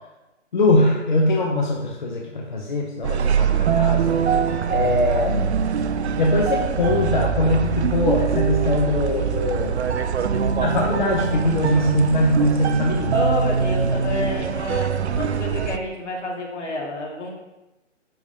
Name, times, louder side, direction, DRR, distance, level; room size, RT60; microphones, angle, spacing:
voice 1, 0.5-4.2 4.7-5.5 6.2-9.8 10.6-13.2, left 2 dB, 40° left, -1 dB, 0.7 m, -22 dB
sound 1, 3.0-15.8, right 6 dB, 60° right, 0.5 m, -22 dB
voice 2, 13.1-17.3, left 1 dB, 65° left, -1 dB, 1.9 m, -29 dB
10.0 x 3.6 x 2.7 m, 1.0 s
hypercardioid pair, 170°, 37 cm